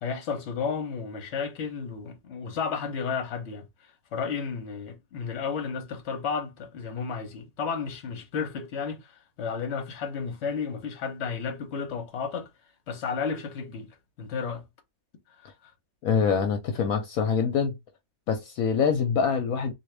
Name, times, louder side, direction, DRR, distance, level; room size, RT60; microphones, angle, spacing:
voice 1, 0.0-3.7 4.1-12.5 12.9-14.6 15.4-15.5, left 5 dB, 50° left, 1.1 m, -32 dB
voice 2, 16.0-17.8 18.3-19.7, left 6 dB, 75° left, 1.1 m, -25 dB
3.4 x 2.7 x 3.2 m
omnidirectional pair, 1.6 m